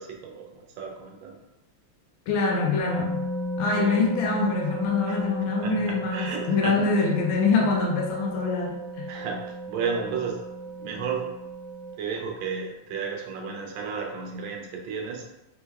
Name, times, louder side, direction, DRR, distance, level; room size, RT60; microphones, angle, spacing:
voice 1, 0.0-1.4 3.8-4.0 5.1-5.2 5.6-6.8 9.1-10.4 10.8-11.3 12.0-15.3, right 5 dB, 70° right, 1 dB, 1.3 m, -33 dB
voice 2, 2.3-3.2 3.6-9.1, left 4 dB, 75° left, -1 dB, 1.4 m, -25 dB
sound 1, 2.8-11.9, equal, 35° right, 0.7 m, -34 dB
4.5 x 2.1 x 3.4 m, 0.94 s
omnidirectional pair, 2.4 m